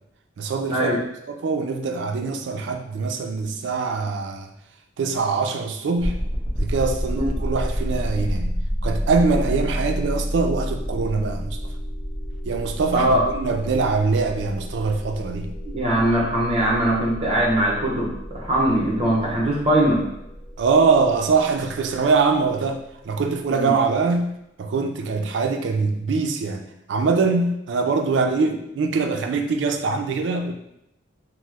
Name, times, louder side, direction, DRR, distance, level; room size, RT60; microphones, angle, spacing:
voice 1, 0.4-1.0 1.3-4.5 5.0-6.2 6.6-8.5 8.8-11.6 12.5-15.5 20.6-24.3 24.6-30.5, right 4 dB, 60° right, 6 dB, 0.3 m, -23 dB
sound 1, 6.0-22.9, equal, 10° left, 0.8 m, -30 dB
voice 2, 15.7-20.0 23.5-23.7, right 1 dB, 30° right, -4 dB, 0.7 m, -21 dB
2.9 x 2.0 x 3.3 m, 0.82 s
head